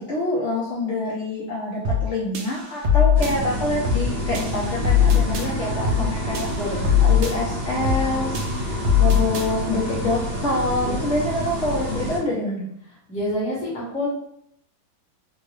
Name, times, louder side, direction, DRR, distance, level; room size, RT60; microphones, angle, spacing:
voice 1, 0.0-6.5 7.0-12.7, left 1 dB, 65° left, -6 dB, 0.7 m, -26 dB
sound 1, 1.8-2.1 2.3-3.3 3.8-4.1 4.3-5.5 5.8-6.1 6.3-7.3 7.8-8.1 8.3-9.5, left 7 dB, 90° right, 1.4 m, -20 dB
sound 2, 3.2-12.2, equal, 55° right, 1.2 m, -28 dB
voice 2, 6.6-6.9 10.8-11.1 13.1-14.1, left 1 dB, 5° left, -6 dB, 0.6 m, -28 dB
3.6 x 2.3 x 3.1 m, 0.73 s
omnidirectional pair, 2.1 m